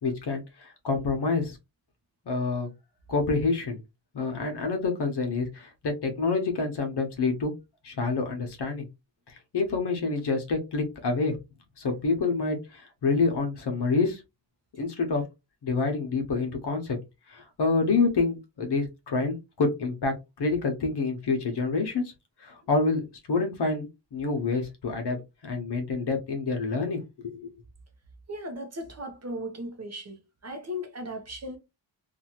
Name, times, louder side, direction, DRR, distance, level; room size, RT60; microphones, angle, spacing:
voice 1, 0.0-1.6 2.3-2.7 3.1-3.8 4.1-7.5 7.8-8.8 9.3-11.4 11.8-14.2 14.8-15.2 15.6-17.0 17.3-22.0 22.4-25.2 25.4-27.5, left 4 dB, 65° left, 0.9 m, -27 dB
voice 2, 28.3-31.6, equal, 35° right, 0.7 m, -37 dB
2.7 x 2.4 x 2.8 m
wide cardioid pair, 160°, 44 cm